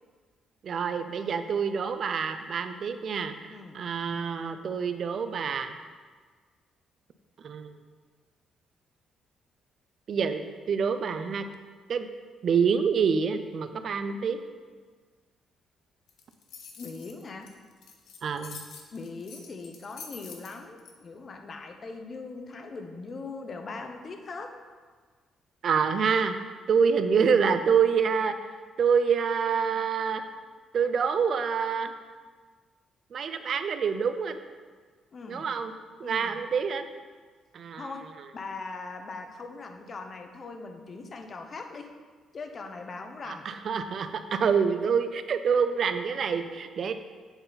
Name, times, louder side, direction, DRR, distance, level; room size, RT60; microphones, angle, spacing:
voice 1, 0.6-5.8 7.4-7.8 10.1-11.5 11.9-12.1 12.4-14.4 18.2-18.6 25.6-26.3 26.7-28.3 28.8-30.2 30.7-31.9 33.1-34.4 35.3-35.7 36.0-36.9 37.5-37.9 43.2-46.9, right 6 dB, 55° right, 9 dB, 0.5 m, -26 dB
sound 1, 16.1-20.9, left 5 dB, 75° left, 0.8 m, -46 dB
voice 2, 16.8-17.5 18.9-24.5 35.1-35.5 36.0-36.4 37.8-38.1 38.3-42.0 42.3-43.5, left 3 dB, 45° left, 5 dB, 0.7 m, -40 dB
7.9 x 4.0 x 4.0 m, 1.5 s
cardioid pair, 90°, 0 cm